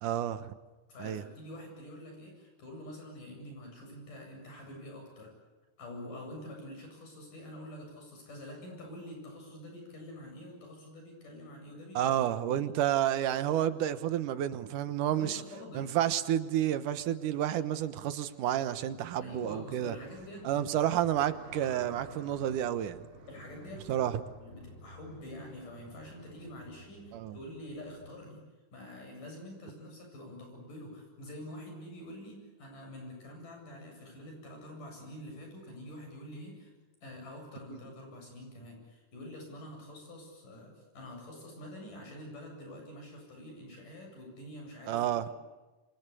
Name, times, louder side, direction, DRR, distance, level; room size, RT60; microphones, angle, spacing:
voice 1, 0.0-0.5 1.0-1.2 12.0-15.4 15.7-20.0 20.4-23.0 23.9-24.2 27.1-27.4 37.7-37.8 44.9-45.3, right 11 dB, 85° right, 12 dB, 2.7 m, -30 dB
voice 2, 0.9-5.4 5.8-12.2 12.5-12.7 15.1-16.0 19.2-20.9 23.3-36.7 37.0-45.4, left 1 dB, 85° left, 2 dB, 9.5 m, -46 dB
sound 1, 18.5-28.2, right 2 dB, 45° right, 4.0 m, -53 dB
27.5 x 25.5 x 8.4 m, 1.2 s
omnidirectional pair, 3.6 m